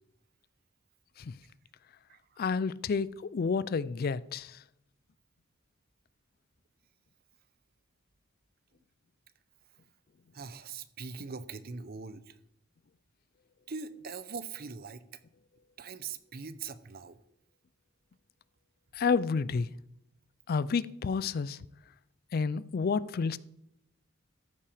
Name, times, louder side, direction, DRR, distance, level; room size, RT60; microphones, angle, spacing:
voice 1, 2.4-4.6 18.9-19.7 20.5-21.6 22.3-23.4, left 5 dB, 45° left, 0.4 m, -30 dB
voice 2, 10.3-12.2 13.7-15.0 15.8-17.2, right 5 dB, 45° right, 0.6 m, -41 dB
14.0 x 5.8 x 4.9 m
head